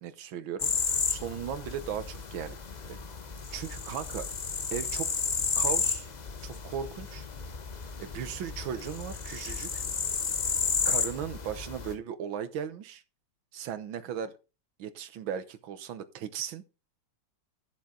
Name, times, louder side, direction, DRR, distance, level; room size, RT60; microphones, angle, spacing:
voice 1, 0.0-2.6 2.9-3.0 3.5-4.3 4.7-5.1 5.6-6.1 6.4-7.3 8.0-9.8 10.9-13.0 13.5-14.3 14.8-16.6, right 8 dB, 85° right, 1.8 m, -37 dB
sound 1, 0.6-11.9, left 5 dB, 70° left, 0.4 m, -32 dB
12.5 x 7.4 x 3.9 m
omnidirectional pair, 2.1 m